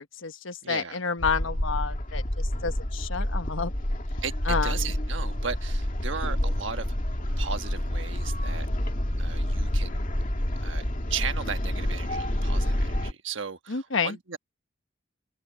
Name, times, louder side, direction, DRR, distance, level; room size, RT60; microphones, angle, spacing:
voice 1, 0.0-3.7 4.5-4.7 13.7-14.2, left 5 dB, 85° left, 1.2 m, -30 dB
voice 2, 0.6-1.0 4.2-7.0 7.4-8.7 9.2-10.1 10.6-14.4, right 6 dB, 70° right, 1.4 m, -36 dB
sound 1, 1.2-13.1, left 1 dB, 45° left, 2.3 m, -28 dB
open air
head